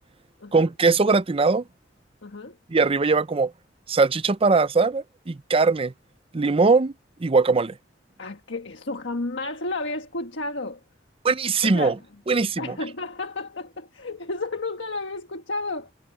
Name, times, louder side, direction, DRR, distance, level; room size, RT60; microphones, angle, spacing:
voice 1, 0.5-1.6 2.7-3.5 3.9-5.9 6.3-6.9 7.2-7.7 11.2-12.0 12.3-12.8, right 4 dB, 30° right, 0.6 m, -21 dB
voice 2, 2.2-2.6 8.2-10.8 11.6-11.9 12.6-15.9, left 2 dB, 75° left, 1.5 m, -32 dB
head